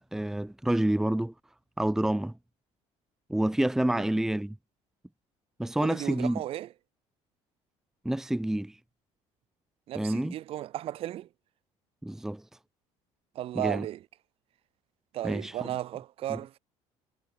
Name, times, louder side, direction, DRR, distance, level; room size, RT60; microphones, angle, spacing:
voice 1, 0.0-1.3 1.8-2.3 3.3-4.5 5.6-6.4 8.0-8.8 9.9-10.3 12.0-12.4 13.5-13.8 15.2-15.7 16.3-16.4, right 1 dB, 5° right, 1.1 m, -28 dB
voice 2, 5.8-6.7 9.9-11.3 13.3-14.0 15.1-16.6, right 13 dB, 50° right, 3.0 m, -35 dB
cardioid pair, 160°, 12 cm